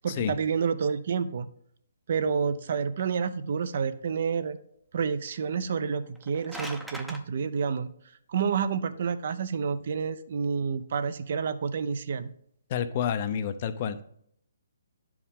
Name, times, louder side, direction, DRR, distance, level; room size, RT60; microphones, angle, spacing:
voice 1, 0.0-1.5 2.1-4.6 4.9-7.9 8.3-12.3, right 6 dB, 55° right, 12 dB, 0.6 m, -29 dB
sound 1, 6.1-7.2, right 1 dB, ahead, 0.6 m, -39 dB
voice 2, 12.7-14.0, left 8 dB, 40° left, 12 dB, 0.6 m, -29 dB
9.8 x 4.7 x 3.6 m, 0.69 s
hypercardioid pair, 145°, 0 cm